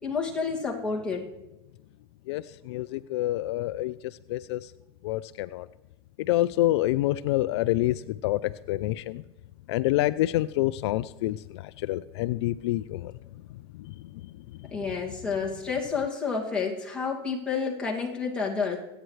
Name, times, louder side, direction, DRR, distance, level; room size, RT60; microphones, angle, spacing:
voice 1, 0.0-1.3 14.7-18.8, left 5 dB, 5° left, -3 dB, 2.2 m, -30 dB
voice 2, 2.3-4.7 5.0-5.7 6.3-9.2 9.7-13.1 13.8-13.9, left 15 dB, 70° left, 15 dB, 0.4 m, -27 dB
24.5 x 9.1 x 3.2 m, 1.0 s
supercardioid pair, 145°, 15 cm